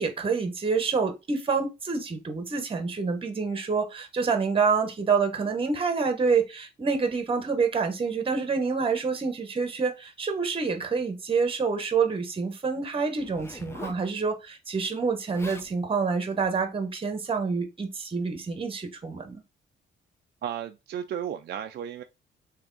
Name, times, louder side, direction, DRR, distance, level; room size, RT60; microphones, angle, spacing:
voice 1, 0.0-19.4, right 5 dB, 25° right, 1.0 m, -27 dB
Zipper (clothing), 13.2-14.1 15.0-15.1 15.3-15.7 16.4-16.7, left 2 dB, 15° left, 0.6 m, -43 dB
voice 2, 20.4-22.0, right 9 dB, 55° right, 0.4 m, -34 dB
3.4 x 2.9 x 3.8 m
cardioid pair, 90°, 20 cm